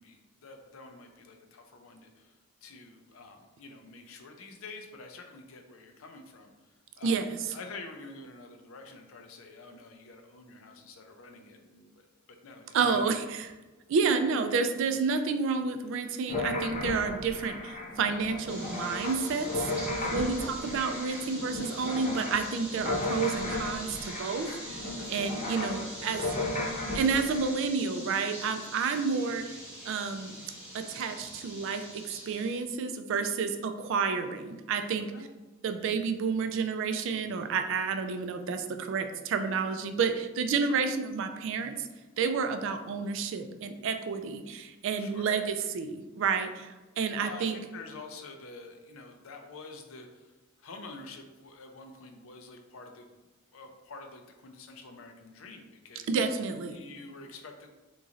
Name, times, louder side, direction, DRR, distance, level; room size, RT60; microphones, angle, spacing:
voice 1, 0.0-6.5 7.0-13.1 20.0-20.3 25.0-25.1 25.7-26.9 34.9-35.3 40.6-40.8 45.0-45.3 47.2-50.3 50.6-53.1 53.5-56.1 56.7-57.7, left 3 dB, 75° left, 4 dB, 0.5 m, -48 dB
voice 2, 12.7-13.5 13.9-19.7 20.1-26.2 26.9-29.5 29.9-30.4 30.7-35.1 35.6-41.9 42.2-47.6 56.1-56.8, right 5 dB, 65° right, 7 dB, 0.3 m, -30 dB
sound 1, 16.3-27.5, left 2 dB, 35° left, 0.9 m, -35 dB
sound 2, 18.5-32.6, right 1 dB, 5° right, 1.0 m, -44 dB
3.9 x 3.0 x 2.4 m, 1.2 s
head